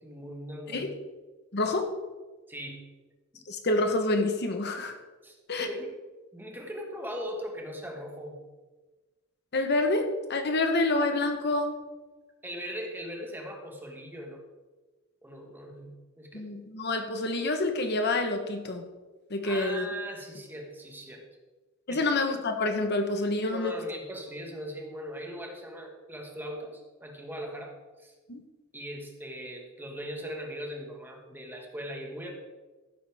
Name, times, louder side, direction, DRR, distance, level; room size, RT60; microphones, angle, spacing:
voice 1, 0.0-0.9 2.5-2.9 3.3-3.5 5.2-5.9 6.3-8.4 12.4-14.4 15.2-16.5 19.4-21.3 21.9-22.0 23.4-28.1 28.7-32.3, equal, 10° right, 1 dB, 1.6 m, -40 dB
voice 2, 1.5-1.9 3.5-5.0 5.5-5.7 9.5-11.8 16.3-18.9 19.3-19.9 21.9-23.7 28.3-28.4, left 2 dB, 55° left, 5 dB, 1.1 m, -27 dB
15.5 x 8.7 x 3.6 m, 1.2 s
head